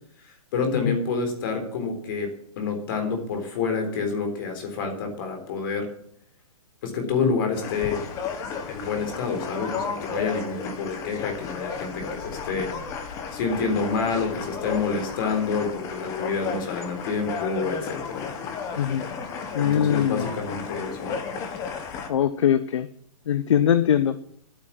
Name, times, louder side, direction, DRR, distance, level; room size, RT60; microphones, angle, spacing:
voice 1, 0.5-2.3 2.6-5.9 6.8-8.0 8.7-18.3 19.6-21.1, left 4 dB, 35° left, 4 dB, 3.8 m, -28 dB
sound 1, 7.5-22.1, left 6 dB, 15° left, 1.2 m, -33 dB
voice 2, 18.8-19.1 19.5-20.3 22.1-22.9 23.3-24.4, left 9 dB, 55° left, 14 dB, 0.8 m, -22 dB
11.0 x 9.2 x 7.4 m, 0.68 s
hypercardioid pair, 160°, 18 cm